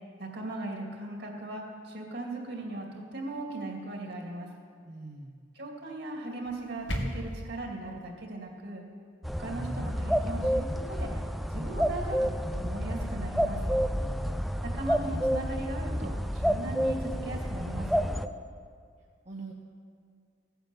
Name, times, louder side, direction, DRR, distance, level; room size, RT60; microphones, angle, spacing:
voice 1, 0.2-4.5 5.5-8.8 9.4-11.2 11.5-13.6 14.6-18.1, right 2 dB, 60° right, 0 dB, 2.5 m, -38 dB
voice 2, 4.8-5.3 14.0-14.5 19.3-19.5, right 3 dB, 35° right, -2 dB, 1.0 m, -43 dB
sound 1, 6.4-7.5, equal, 65° left, 1.7 m, -34 dB
sound 2, 9.2-18.3, equal, ahead, 0.4 m, -29 dB
16.5 x 9.1 x 7.2 m, 2.2 s
head